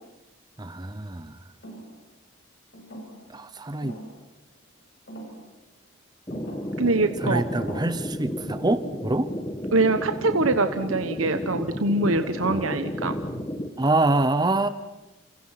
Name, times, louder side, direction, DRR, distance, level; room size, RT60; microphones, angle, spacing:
voice 1, 0.6-1.4 3.3-4.0 7.2-9.3 12.5-12.6 13.8-14.7, right 2 dB, 20° right, 13 dB, 0.9 m, -25 dB
sound 1, 1.6-2.0 2.7-3.4 3.8-4.2 5.1-5.4 6.3-6.8 7.5-7.9, right 1 dB, 55° left, 6.5 m, -40 dB
sound 2, 6.3-13.7, equal, 20° left, 1.5 m, -32 dB
voice 2, 6.8-7.4 9.7-13.2, right 2 dB, 80° right, 9 dB, 1.1 m, -23 dB
29.5 x 27.5 x 5.9 m, 0.99 s
head